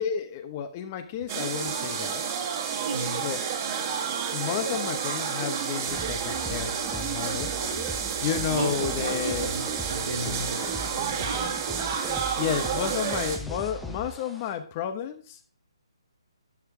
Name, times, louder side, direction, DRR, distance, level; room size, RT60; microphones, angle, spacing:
voice 1, 0.0-2.2 3.2-3.4 4.3-7.5 8.2-9.5 12.3-15.4, left 9 dB, 25° left, 0.9 m, -31 dB
sound 1, 1.3-13.4, right 7 dB, 30° right, 1.8 m, -30 dB
voice 2, 2.8-3.3 3.9-4.1 8.5-11.6, right 2 dB, 70° right, 2.4 m, -34 dB
sound 2, 5.9-14.5, right 1 dB, ahead, 0.8 m, -40 dB
11.5 x 4.5 x 4.9 m
hypercardioid pair, 155°, 3 cm